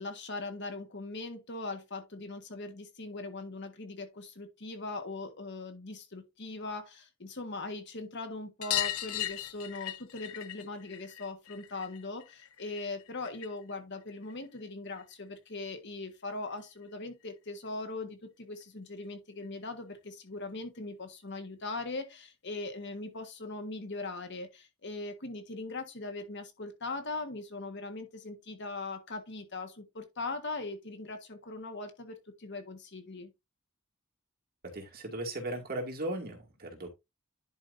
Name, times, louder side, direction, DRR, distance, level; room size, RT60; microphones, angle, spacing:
voice 1, 0.0-33.3, left 3 dB, 55° left, 1.6 m, -40 dB
sound 1, 8.6-13.7 14.0-15.1 16.5-16.6 16.8-16.9 17.2-17.3 18.6-18.7 19.0-19.1 19.4-19.5 20.7-20.8 21.6-21.7, left 13 dB, 70° left, 0.7 m, -38 dB
voice 2, 34.6-36.9, right 1 dB, 45° right, 2.4 m, -37 dB
11.0 x 4.9 x 2.7 m
head